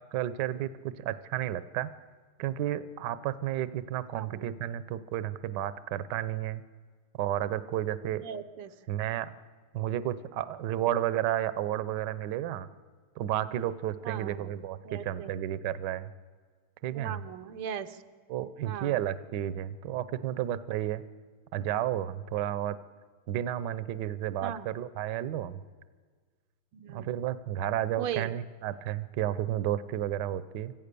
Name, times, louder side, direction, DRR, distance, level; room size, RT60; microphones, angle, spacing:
voice 1, 0.1-1.9 2.4-6.6 7.2-8.2 8.9-9.3 9.7-12.7 13.2-16.1 16.8-17.2 18.3-21.0 21.5-22.7 23.3-25.6 26.9-30.7, right 12 dB, 65° right, 15 dB, 1.2 m, -32 dB
voice 2, 4.1-4.4 8.2-8.7 14.0-14.5 14.8-15.3 16.9-18.0 18.6-19.0 24.4-24.7 26.7-27.1 28.0-28.3, right 9 dB, 90° right, 10 dB, 1.8 m, -38 dB
25.5 x 15.0 x 6.8 m, 1.5 s
omnidirectional pair, 2.3 m